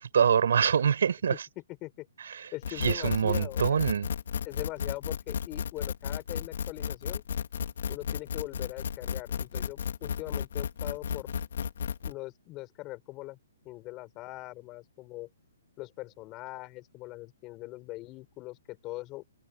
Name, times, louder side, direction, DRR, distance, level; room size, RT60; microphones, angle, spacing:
voice 1, 0.0-1.3 2.3-2.5 2.8-4.1, right 7 dB, 70° right, 5.6 m, -25 dB
voice 2, 2.5-3.8 4.4-7.2 7.9-11.3 12.0-13.4 13.7-15.3 15.8-19.2, left 19 dB, 20° left, 7.0 m, -41 dB
sound 1, 2.6-12.1, left 8 dB, 65° left, 3.4 m, -33 dB
hypercardioid pair, 160°, 0 cm